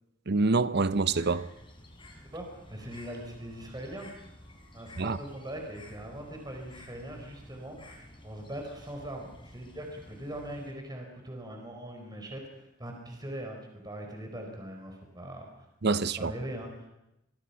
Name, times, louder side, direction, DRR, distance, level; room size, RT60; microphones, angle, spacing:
voice 1, 0.3-1.5 5.0-5.2 15.8-16.3, right 3 dB, 55° right, 0.8 m, -26 dB
Bird, 0.9-10.7, left 1 dB, 25° left, 4.0 m, -52 dB
voice 2, 2.3-4.1 4.7-8.0 8.2-15.7 16.2-16.9, right 1 dB, 20° right, 4.3 m, -41 dB
26.5 x 22.5 x 5.7 m
head